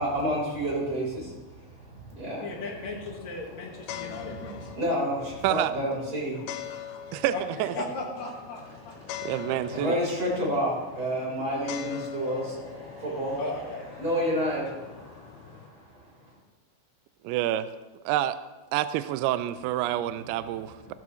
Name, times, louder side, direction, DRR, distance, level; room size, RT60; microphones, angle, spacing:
voice 1, 0.0-2.6 3.4-7.1 8.7-16.4 20.4-20.9, equal, 20° right, -4 dB, 4.4 m, -31 dB
voice 2, 2.4-4.7 7.3-7.4 7.7-9.0 13.4-13.9, left 2 dB, 55° left, -1 dB, 2.3 m, -36 dB
sound 1, 2.5-15.7, left 10 dB, 90° left, 2.9 m, -43 dB
voice 3, 9.2-10.0 17.2-17.7 18.1-18.4 18.7-20.9, right 13 dB, 85° right, 13 dB, 2.3 m, -27 dB
15.0 x 15.0 x 3.1 m, 1.2 s
omnidirectional pair, 5.0 m